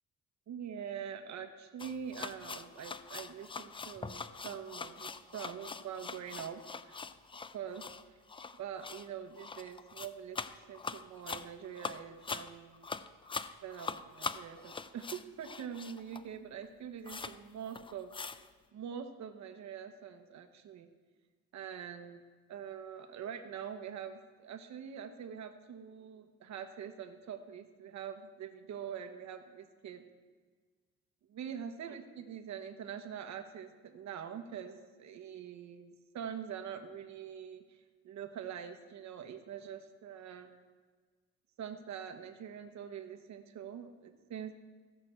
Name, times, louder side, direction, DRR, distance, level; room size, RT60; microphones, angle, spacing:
voice 1, 0.5-7.0 7.5-7.8 8.6-10.4 10.7-12.9 13.6-18.1 18.7-20.9 21.5-22.2 22.5-30.0 31.3-40.5 41.6-44.5, right 8 dB, 65° right, 7 dB, 1.0 m, -44 dB
sound 1, 1.8-16.4 16.6-16.7 17.1-17.4 17.7-18.5, left 4 dB, 20° left, 0.4 m, -43 dB
16.0 x 6.1 x 4.4 m, 1.5 s
cardioid pair, 90°, 30 cm